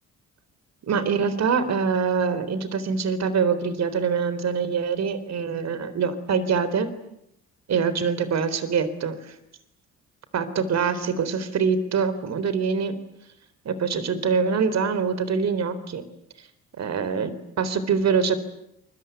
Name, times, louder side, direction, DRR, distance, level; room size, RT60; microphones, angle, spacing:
voice 1, 0.8-6.9 7.7-9.3 10.3-12.9 13.7-16.0 16.8-18.4, right 6 dB, 60° right, 13 dB, 3.9 m, -24 dB
27.5 x 22.5 x 9.5 m, 0.78 s
cardioid pair, 90°, 30 cm